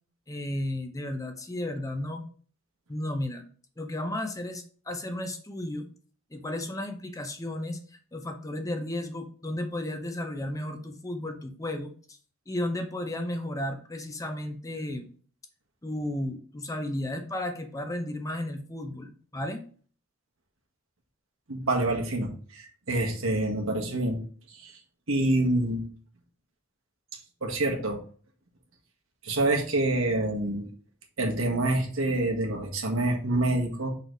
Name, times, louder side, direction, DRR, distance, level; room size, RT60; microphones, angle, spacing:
voice 1, 0.3-2.3 2.9-3.4 3.8-5.9 6.3-7.8 8.1-12.2 12.5-15.1 15.8-19.7, left 1 dB, 15° left, 5 dB, 0.7 m, -33 dB
voice 2, 21.5-24.2 24.6-24.8 25.1-25.8 27.4-28.0 29.2-30.7 31.2-33.9, right 2 dB, 80° right, 0 dB, 1.6 m, -27 dB
6.5 x 4.1 x 4.0 m, 0.43 s
head